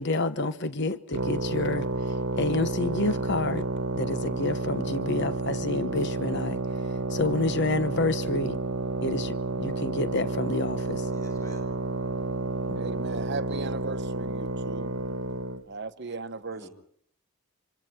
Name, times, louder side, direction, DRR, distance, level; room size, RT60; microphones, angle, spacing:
voice 1, 0.0-1.9 2.4-3.7 4.0-6.6 7.1-8.6 9.0-11.0 12.7-12.8, left 2 dB, 55° left, 1.1 m, -28 dB
sound 1, 1.1-15.6, right 2 dB, 70° right, 1.2 m, -30 dB
voice 2, 10.9-11.7 16.5-16.7, equal, 15° left, 7.6 m, -49 dB
voice 3, 12.7-15.0 15.7-16.7, right 3 dB, 55° right, 1.0 m, -37 dB
26.0 x 26.0 x 4.5 m
head